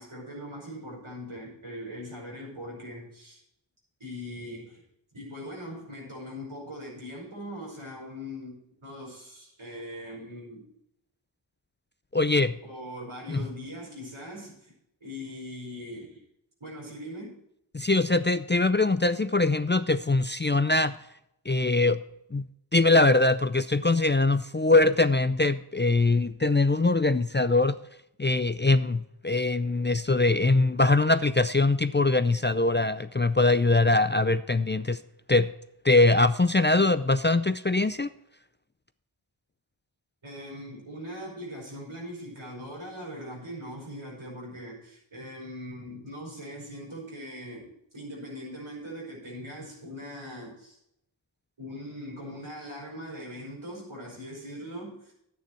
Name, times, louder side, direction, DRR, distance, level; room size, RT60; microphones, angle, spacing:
voice 1, 0.0-3.4 4.0-4.8 5.1-10.6 12.6-14.7 15.0-16.2 16.6-17.4 40.2-50.8 51.6-55.1, equal, 80° right, -3 dB, 5.3 m, -41 dB
voice 2, 12.1-12.6 13.3-13.4 17.7-20.9 21.5-22.0 22.3-22.4 22.7-27.8 28.2-35.0 35.3-35.5 35.8-38.1, left 2 dB, 25° left, 13 dB, 0.4 m, -22 dB
11.5 x 9.3 x 4.4 m, 0.79 s
wide cardioid pair, 50°, 47 cm